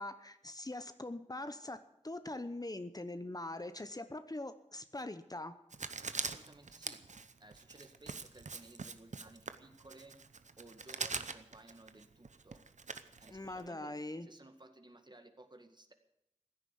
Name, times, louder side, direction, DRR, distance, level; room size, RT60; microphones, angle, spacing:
voice 1, 0.0-5.6 13.3-14.3, left 2 dB, 30° left, 11 dB, 0.9 m, -42 dB
Writing, 5.7-13.7, right 4 dB, 85° right, 0.8 m, -43 dB
voice 2, 6.2-7.0 7.4-10.2 10.6-12.7 13.2-15.9, right 2 dB, 40° right, 6 dB, 1.9 m, -57 dB
16.0 x 9.9 x 8.3 m, 0.80 s
wide cardioid pair, 50°, 12 cm